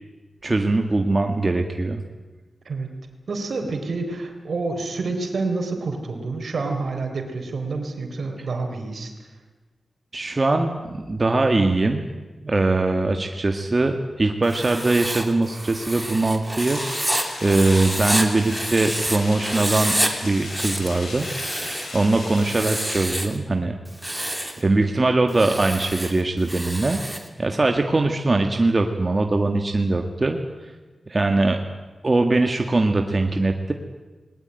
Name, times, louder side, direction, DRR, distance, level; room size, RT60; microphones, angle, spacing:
voice 1, 0.4-2.0 10.1-12.1 12.4-16.8 17.4-21.3 21.9-23.8 24.1-24.3 24.6-27.0 27.4-30.4 31.1-31.6 32.0-33.7, right 2 dB, 35° right, 4 dB, 1.8 m, -21 dB
voice 2, 3.3-9.1, right 3 dB, 75° right, 4 dB, 3.9 m, -28 dB
Writing, 14.4-19.2 19.4-20.1 20.4-21.9 22.4-23.4 23.9-24.6 25.3-27.3, right 1 dB, 10° right, 2.9 m, -28 dB
sound 1, 16.6-23.0, left 2 dB, 85° left, 5.8 m, -36 dB
20.0 x 19.5 x 9.2 m, 1.2 s
wide cardioid pair, 75°, 0 cm